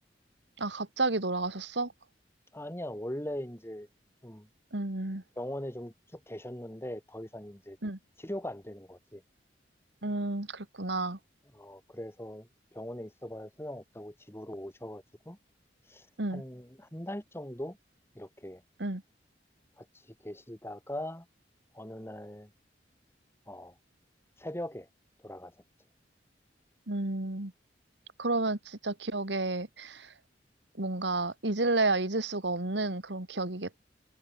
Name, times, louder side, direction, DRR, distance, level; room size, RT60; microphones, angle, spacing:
voice 1, 0.6-1.9 4.7-5.2 7.8-8.0 10.0-11.2 16.2-16.4 18.8-19.0 26.9-27.5 28.2-30.1 30.8-33.8, right 2 dB, 75° right, 2.3 m, -31 dB
voice 2, 2.5-3.9 4.2-4.5 5.4-7.8 8.2-9.2 11.5-15.4 15.9-16.1 16.3-17.8 18.1-18.6 19.8-19.9 20.2-21.2 21.7-22.5 23.5-23.7 24.4-24.9 25.2-25.5, left 1 dB, 15° left, 4.8 m, -40 dB
head